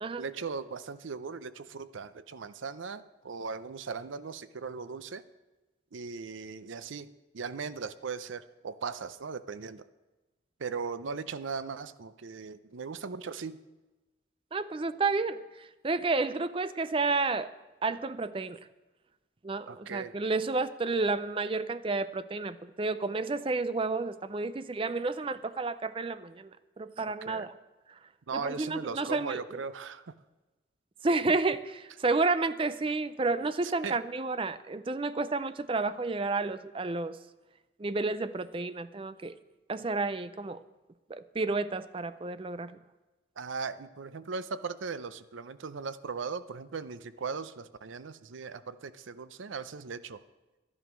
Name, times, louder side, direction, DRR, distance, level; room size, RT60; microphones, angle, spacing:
voice 1, 0.2-5.2 5.9-9.8 10.6-13.6 19.7-20.2 27.2-27.5 28.3-30.1 33.6-34.0 43.4-50.2, right 5 dB, 80° right, 14 dB, 0.6 m, -38 dB
voice 2, 14.5-17.5 17.8-18.6 19.4-26.5 26.8-27.5 28.3-29.4 31.0-37.2 37.8-39.3 39.7-40.6 41.1-42.7, right 3 dB, 25° right, 14 dB, 0.4 m, -31 dB
12.0 x 11.0 x 6.1 m, 1.1 s
head